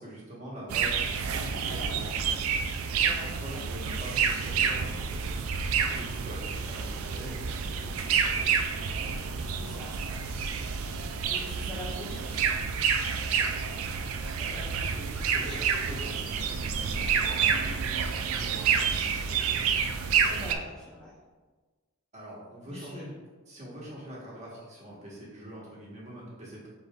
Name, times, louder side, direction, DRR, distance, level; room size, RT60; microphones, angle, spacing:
voice 1, 0.0-2.1 2.9-8.5 14.4-19.7 22.1-23.1 23.5-26.7, equal, 35° right, -6 dB, 1.2 m, -44 dB
sound 1, 0.7-20.6, right 6 dB, 80° right, 0.4 m, -29 dB
voice 2, 3.0-3.6 9.5-9.9 11.2-12.5 14.3-15.6 20.2-21.1 22.6-23.2, left 1 dB, 5° left, -8 dB, 0.6 m, -44 dB
5.3 x 3.9 x 2.4 m, 1.3 s
head